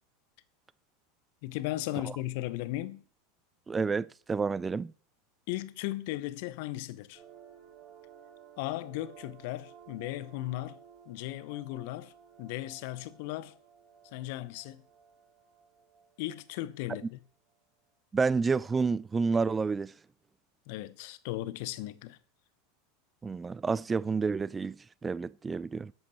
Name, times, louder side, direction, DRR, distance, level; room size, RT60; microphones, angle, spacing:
voice 1, 1.4-3.0 5.5-7.2 8.6-10.8 11.1-12.1 12.4-13.5 14.1-14.8 16.2-17.2 20.7-22.2, left 16 dB, 65° left, 0.8 m, -36 dB
voice 2, 3.7-4.9 18.1-19.9 23.2-24.8 25.0-25.9, right 4 dB, 20° right, 0.3 m, -29 dB
sound 1, 7.1-17.0, right 8 dB, 60° right, 6.3 m, -56 dB
11.0 x 8.0 x 4.1 m
hypercardioid pair, 90°, 0 cm